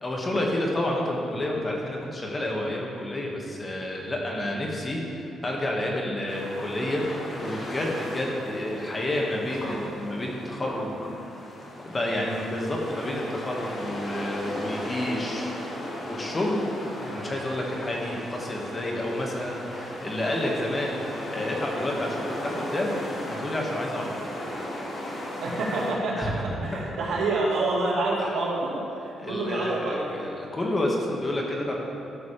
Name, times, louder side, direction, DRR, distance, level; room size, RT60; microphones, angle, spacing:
voice 1, 0.0-10.9 11.4-11.5 11.8-15.5 16.0-16.6 17.0-21.0 21.3-22.9 23.2-24.3 26.2-26.7 29.2-31.8, left 1 dB, 30° left, -1 dB, 1.8 m, -29 dB
sound 1, 6.3-25.9, left 1 dB, 50° left, 2.3 m, -36 dB
voice 2, 25.4-26.3 26.6-30.3, right 2 dB, 75° right, -3 dB, 2.0 m, -27 dB
13.0 x 6.8 x 3.4 m, 2.7 s
cardioid pair, 75°, 0 cm